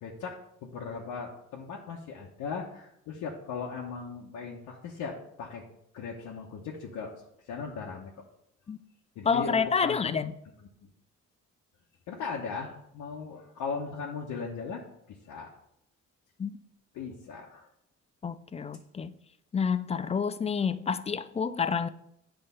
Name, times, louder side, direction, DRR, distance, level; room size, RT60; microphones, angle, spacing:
voice 1, 0.0-5.6 5.9-7.1 7.5-8.1 9.2-10.1 12.1-14.8 15.1-15.5 16.9-17.7, left 5 dB, 85° left, 1.0 m, -38 dB
voice 2, 9.3-10.3 16.4-16.5 18.2-19.1 19.5-21.9, left 6 dB, 20° left, 0.3 m, -28 dB
8.4 x 3.4 x 5.4 m
cardioid pair, 90°, 30 cm